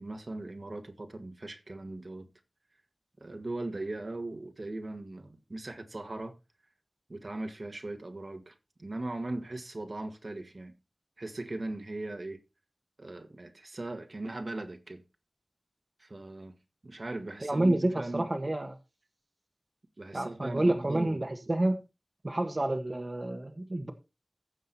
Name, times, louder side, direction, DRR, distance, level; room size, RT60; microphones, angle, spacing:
voice 1, 0.0-2.3 3.2-6.4 7.1-8.5 8.8-10.7 11.2-12.4 13.0-15.0 16.0-16.6 16.8-18.3 20.0-21.5, right 2 dB, 60° right, 1.8 m, -39 dB
voice 2, 17.4-18.7 20.1-21.8 22.2-23.9, right 1 dB, 40° right, 1.5 m, -29 dB
15.5 x 6.4 x 4.2 m
wide cardioid pair, 55°, 0 cm